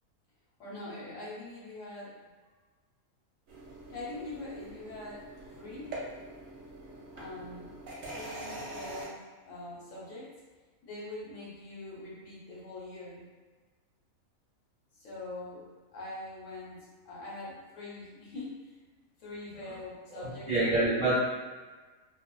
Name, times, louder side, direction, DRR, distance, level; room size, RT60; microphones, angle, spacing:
voice 1, 0.6-2.2 3.9-5.2 5.6-6.0 7.1-7.7 8.1-10.3 10.8-13.2 14.9-15.6 15.9-18.7 19.2-20.7, left 2 dB, 65° left, -6 dB, 1.0 m, -43 dB
sound 1, 3.5-9.1, right 1 dB, 70° right, 1.0 m, -44 dB
voice 2, 20.1-21.2, right 2 dB, 50° right, -10 dB, 0.6 m, -27 dB
2.5 x 2.3 x 2.3 m, 1.4 s
omnidirectional pair, 1.5 m